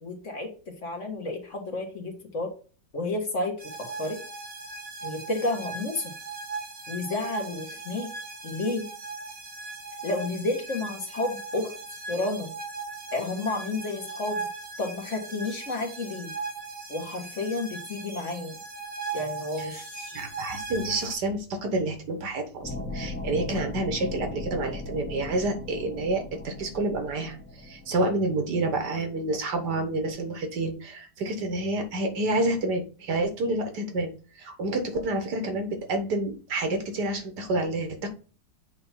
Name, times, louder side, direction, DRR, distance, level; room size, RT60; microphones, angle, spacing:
voice 1, 0.0-2.5 2.9-4.2 5.0-6.1 6.9-8.1 8.4-8.9 10.0-11.7 12.1-12.5 13.1-14.5 14.8-16.3 16.9-18.6 19.1-20.2, left 2 dB, 45° left, 3 dB, 1.6 m, -31 dB
sound 1, 3.6-21.1, right 4 dB, 50° right, 3.0 m, -38 dB
voice 2, 20.1-38.1, right 2 dB, 70° right, 5 dB, 1.8 m, -29 dB
sound 2, 22.6-28.2, left 2 dB, 5° left, 1.3 m, -38 dB
8.1 x 3.0 x 5.6 m, 0.37 s
omnidirectional pair, 1.8 m